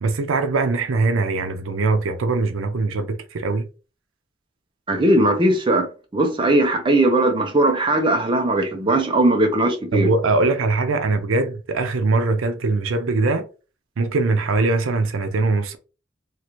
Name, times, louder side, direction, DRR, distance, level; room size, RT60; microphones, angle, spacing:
voice 1, 0.0-3.7 9.9-13.4 14.0-15.8, right 3 dB, 85° right, 0.5 m, -21 dB
voice 2, 4.9-5.9 6.1-10.1, right 1 dB, 25° right, 0.5 m, -19 dB
3.1 x 2.4 x 2.9 m
head